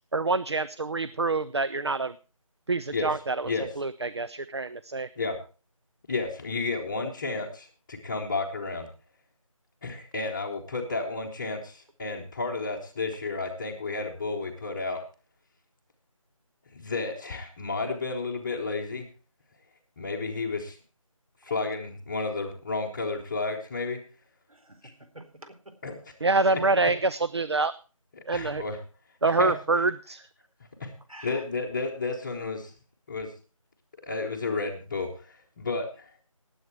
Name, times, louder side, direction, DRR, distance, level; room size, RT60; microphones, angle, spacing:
voice 1, 0.1-2.1 2.7-5.1 26.2-27.7 28.3-28.6 29.2-30.2, right 3 dB, 50° right, 15 dB, 0.6 m, -26 dB
voice 2, 6.1-8.9 9.8-15.0 16.7-19.1 20.0-20.8 21.4-24.0 25.8-25.9 26.4-26.5 26.8-26.9 28.2-28.8 29.3-29.5 30.8-30.9 31.2-32.7 33.1-33.3 34.0-36.1, left 3 dB, 10° left, -5 dB, 1.0 m, -32 dB
voice 3, 24.5-25.7 31.1-31.4, right 1 dB, 80° right, 8 dB, 4.2 m, -48 dB
18.5 x 8.1 x 4.6 m, 0.35 s
figure-of-eight pair, 170°, 18 cm